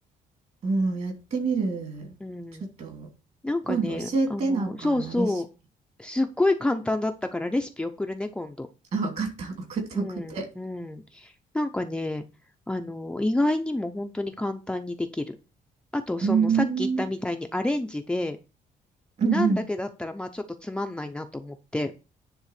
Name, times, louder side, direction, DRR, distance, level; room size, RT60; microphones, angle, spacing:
voice 1, 0.6-2.1 2.6-3.1 3.7-5.3 8.9-10.5 16.2-17.0 19.2-19.6, right 5 dB, 45° right, 3.0 m, -27 dB
voice 2, 2.2-2.7 3.4-5.5 6.0-8.7 9.9-12.2 12.7-15.4 15.9-18.4 19.2-21.9, left 2 dB, 5° left, 0.6 m, -29 dB
10.0 x 3.7 x 6.8 m
cardioid pair, 150°, 15 cm